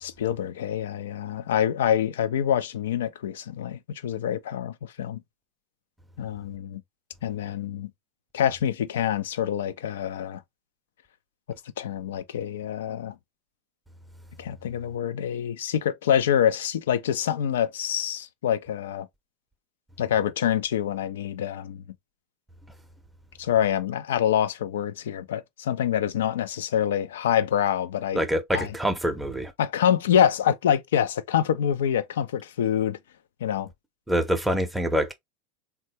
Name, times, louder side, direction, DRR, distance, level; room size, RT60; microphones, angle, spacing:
voice 1, 0.0-5.2 6.2-6.8 7.2-7.9 8.3-10.4 11.8-13.1 14.4-19.1 20.0-21.8 23.4-28.2 28.5-28.7 29.6-33.0 33.4-33.7, left 9 dB, 80° left, 0.4 m, -26 dB
voice 2, 28.1-29.5 34.1-35.1, equal, 5° right, 0.6 m, -25 dB
3.3 x 2.2 x 2.7 m
hypercardioid pair, 95°, 0 cm